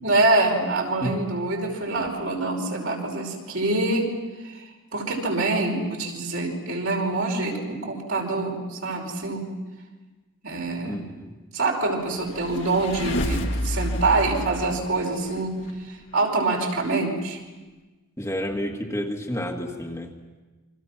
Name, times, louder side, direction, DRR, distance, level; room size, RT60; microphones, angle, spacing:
voice 1, 0.0-4.1 4.4-9.5 10.4-11.0 11.5-17.4, right 2 dB, 65° right, 0 dB, 5.5 m, -25 dB
voice 2, 10.8-11.3 18.2-20.1, equal, 15° left, 1 dB, 1.8 m, -30 dB
sound 1, 12.1-15.7, left 1 dB, 55° left, 2.0 m, -29 dB
29.5 x 25.0 x 6.1 m, 1.2 s
head